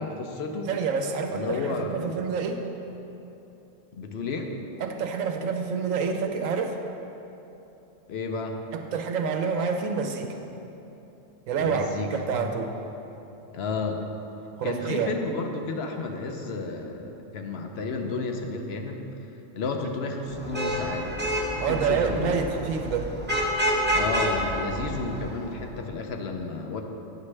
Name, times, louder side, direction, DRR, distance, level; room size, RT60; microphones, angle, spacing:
voice 1, 0.0-0.7 1.3-2.3 3.9-4.5 8.1-8.6 11.6-12.5 13.5-14.1 14.6-19.2 19.6-21.1 21.6-22.3 23.9-26.8, left 3 dB, 60° left, 4 dB, 0.8 m, -32 dB
voice 2, 0.7-2.6 4.8-6.8 8.7-10.4 11.5-11.9 12.1-12.7 14.6-15.1 21.6-23.1, right 6 dB, 80° right, 4 dB, 1.0 m, -27 dB
Vehicle horn car horn honking / Traffic noise roadway noise, 20.3-25.6, equal, 10° right, 0.6 m, -29 dB
9.5 x 7.1 x 3.2 m, 3.0 s
omnidirectional pair, 1.4 m